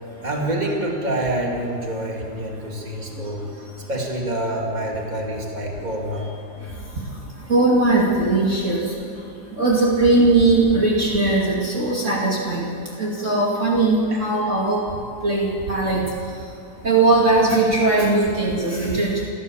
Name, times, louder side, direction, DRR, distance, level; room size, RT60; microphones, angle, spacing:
voice 1, 0.2-6.3 6.6-6.7 14.1-14.5, right 1 dB, 20° right, -1 dB, 1.3 m, -27 dB
voice 2, 7.5-8.9 9.5-12.7 13.0-14.8 15.2-16.0 16.8-19.1, right 2 dB, 60° right, -4 dB, 0.7 m, -19 dB
29.0 x 14.0 x 7.2 m, 2.4 s
omnidirectional pair, 5.7 m